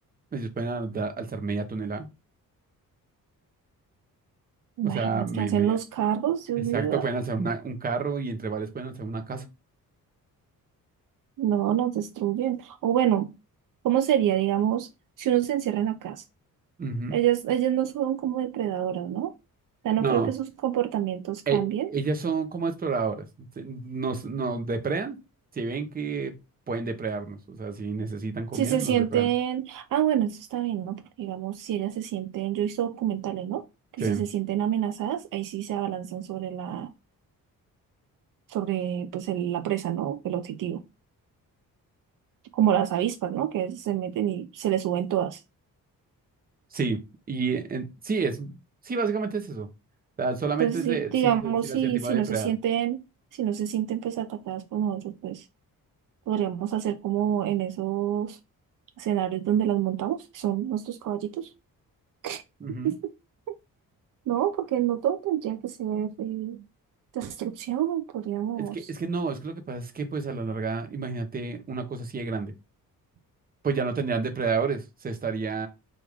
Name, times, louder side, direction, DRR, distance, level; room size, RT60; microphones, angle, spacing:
voice 1, 0.3-2.1 4.8-5.8 6.7-9.4 16.8-17.2 20.0-20.3 21.5-23.3 23.6-25.2 25.5-26.3 26.7-29.3 34.0-34.2 46.7-47.0 47.3-48.5 48.8-49.7 50.2-52.5 62.6-62.9 68.6-72.5 73.6-75.7, right 4 dB, 25° right, 0.7 m, -30 dB
voice 2, 4.8-7.0 11.4-13.3 13.8-14.9 15.2-16.2 17.1-19.3 19.8-21.9 28.5-33.6 34.0-36.9 38.5-40.8 42.5-45.4 50.6-53.0 53.4-55.4 56.3-58.4 59.0-61.5 62.2-62.4 62.8-63.1 64.3-66.6 67.1-68.8, right 11 dB, 65° right, 0.5 m, -27 dB
4.9 x 2.5 x 3.4 m
cardioid pair, 125°, 35 cm